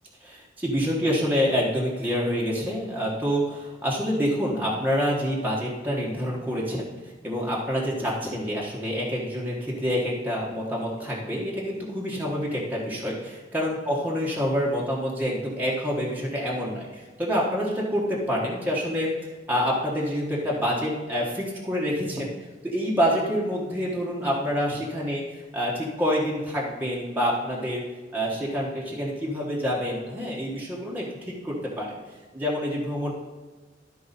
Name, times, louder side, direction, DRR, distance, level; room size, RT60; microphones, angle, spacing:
voice 1, 0.2-19.1 19.5-22.3 22.6-27.8 28.1-32.0 32.3-33.1, equal, 10° right, -5 dB, 1.2 m, -27 dB
12.0 x 4.7 x 4.1 m, 1.3 s
head